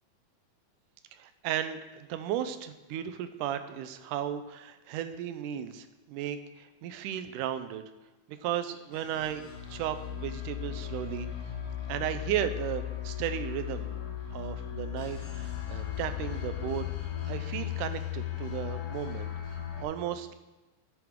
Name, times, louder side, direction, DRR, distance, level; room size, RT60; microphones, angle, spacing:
voice 1, 1.1-7.8 8.3-11.3 11.9-13.9 14.3-19.3 19.6-20.3, right 10 dB, 80° right, 10 dB, 2.1 m, -35 dB
sound 1, 8.9-19.8, left 11 dB, 70° left, 2.7 m, -36 dB
11.0 x 9.1 x 3.7 m, 1.1 s
omnidirectional pair, 3.8 m